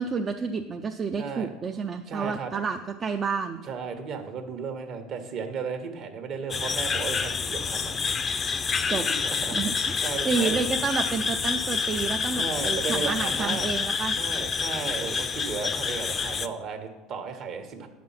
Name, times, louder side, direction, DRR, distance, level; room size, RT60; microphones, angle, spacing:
voice 1, 0.0-3.6 8.9-9.1 9.5-14.1, right 5 dB, 35° right, 4 dB, 0.5 m, -30 dB
voice 2, 1.2-1.5 2.1-2.5 3.6-8.0 8.5-8.6 8.9-10.6 12.4-13.7 14.1-17.9, right 5 dB, 55° right, 6 dB, 1.4 m, -35 dB
sound 1, 6.5-16.5, left 5 dB, 35° left, 0.5 m, -28 dB
9.4 x 6.0 x 5.7 m, 1.2 s
supercardioid pair, 90°, 0 cm